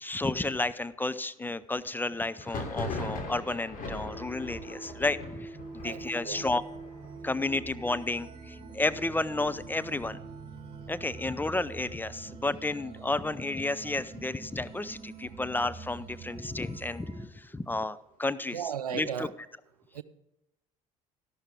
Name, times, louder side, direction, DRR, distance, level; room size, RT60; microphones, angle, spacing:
voice 1, 0.0-6.6 7.2-10.2 10.9-19.3, left 2 dB, 10° left, 0.5 m, -32 dB
Thunder, 2.4-11.9 12.1-12.8 13.1-14.1 14.5-16.2, left 2 dB, 45° left, 3.0 m, -42 dB
sound 1, 4.1-17.3, right 4 dB, 35° right, 2.5 m, -45 dB
voice 2, 5.8-6.5 18.5-19.3 19.9-20.0, right 8 dB, 85° right, 0.5 m, -35 dB
12.5 x 12.0 x 3.5 m
hypercardioid pair, 60°, 19 cm